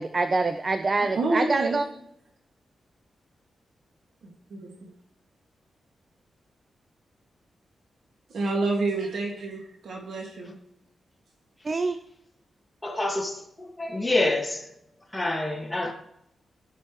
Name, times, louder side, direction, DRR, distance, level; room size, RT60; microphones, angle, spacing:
voice 1, 0.0-1.9 11.6-12.0, right 3 dB, 35° right, 0.5 m, -25 dB
voice 2, 1.2-1.8 4.5-4.7 8.3-10.5, right 2 dB, 70° right, 2.0 m, -28 dB
voice 3, 12.8-14.7 15.1-15.9, left 2 dB, 10° left, 2.1 m, -27 dB
16.0 x 6.0 x 3.1 m
wide cardioid pair, 115°, 0 cm